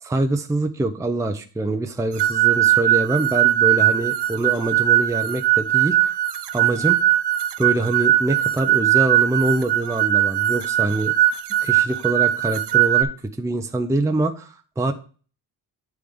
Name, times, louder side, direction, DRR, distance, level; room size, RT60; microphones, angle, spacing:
voice 1, 0.0-6.1 6.5-7.0 7.6-11.2 11.6-13.1 13.4-14.9, right 2 dB, 10° right, 6 dB, 0.5 m, -24 dB
sound 1, 2.2-13.0, right 13 dB, 75° right, 0.7 m, -19 dB
9.4 x 3.6 x 5.0 m, 0.39 s
wide cardioid pair, 125°, 41 cm